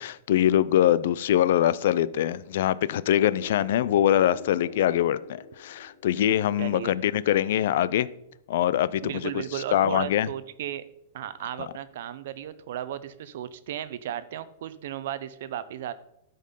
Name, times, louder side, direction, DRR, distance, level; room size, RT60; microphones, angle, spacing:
voice 1, 0.0-8.1 8.5-10.3, left 11 dB, 60° left, 18 dB, 0.5 m, -23 dB
sound 1, 3.0-6.8, left 4 dB, 90° left, 1.4 m, -45 dB
voice 2, 6.6-6.9 9.0-10.8 11.1-15.9, right 11 dB, 60° right, 14 dB, 0.7 m, -35 dB
13.0 x 5.3 x 5.4 m, 0.80 s
supercardioid pair, 165°, 0 cm